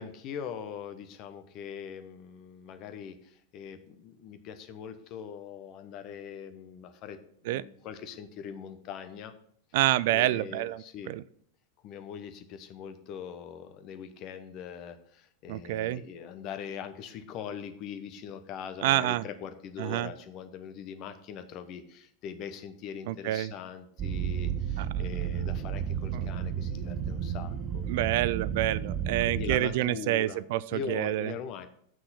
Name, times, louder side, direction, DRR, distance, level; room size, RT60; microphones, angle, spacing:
voice 1, 0.0-7.2 7.4-9.3 10.1-11.1 11.8-27.9 29.2-30.4 30.7-31.7, left 7 dB, 40° left, 10 dB, 1.1 m, -41 dB
voice 2, 9.7-11.2 15.5-16.0 18.8-19.2 19.8-20.1 23.1-23.5 24.8-24.9 26.1-26.3 27.9-31.3, right 15 dB, 50° right, 19 dB, 0.3 m, -28 dB
sound 1, 24.0-29.6, right 8 dB, 30° right, 0.7 m, -32 dB
7.7 x 6.1 x 5.8 m, 0.64 s
figure-of-eight pair, 90°, 0 cm